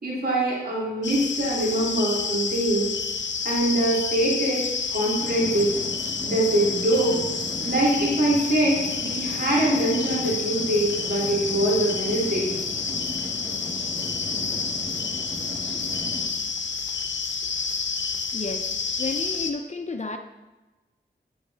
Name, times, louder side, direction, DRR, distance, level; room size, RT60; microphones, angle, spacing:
voice 1, 0.0-2.9 3.4-4.6 4.9-5.7 6.2-7.2 7.6-12.5, right 1 dB, 55° right, -5 dB, 2.9 m, -23 dB
sound 1, 1.0-19.5, left 5 dB, 75° left, 0.7 m, -29 dB
sound 2, 5.2-16.3, equal, ahead, 1.7 m, -38 dB
voice 2, 18.3-18.7 19.0-20.2, left 3 dB, 40° left, 5 dB, 0.7 m, -31 dB
8.7 x 6.8 x 4.1 m, 1.1 s
cardioid pair, 45°, 19 cm